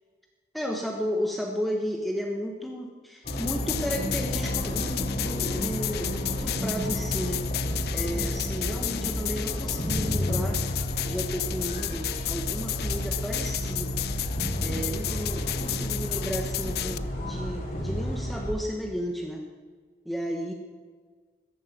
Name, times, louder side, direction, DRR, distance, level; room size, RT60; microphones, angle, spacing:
voice 1, 0.5-10.6 11.0-14.0 14.6-19.4 20.0-20.5, equal, ahead, 1 dB, 1.2 m, -33 dB
sound 1, 3.2-18.5, equal, 45° left, 3.8 m, -31 dB
sound 2, 3.3-17.0, left 13 dB, 60° left, 0.5 m, -33 dB
13.5 x 10.5 x 7.4 m, 1.5 s
head